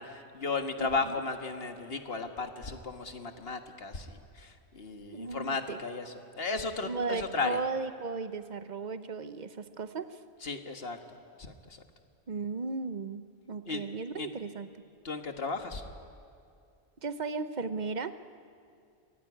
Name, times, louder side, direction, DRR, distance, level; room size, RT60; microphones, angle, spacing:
voice 1, 0.0-7.6 10.4-11.0 11.4-11.8 13.7-13.8 14.2-14.3 15.0-15.8, left 4 dB, 65° left, 6 dB, 1.7 m, -35 dB
voice 2, 0.8-1.2 5.1-5.8 6.8-10.2 12.3-14.7 17.0-18.1, right 4 dB, 45° right, 11 dB, 0.9 m, -36 dB
24.0 x 18.5 x 9.8 m, 2.4 s
omnidirectional pair, 1.1 m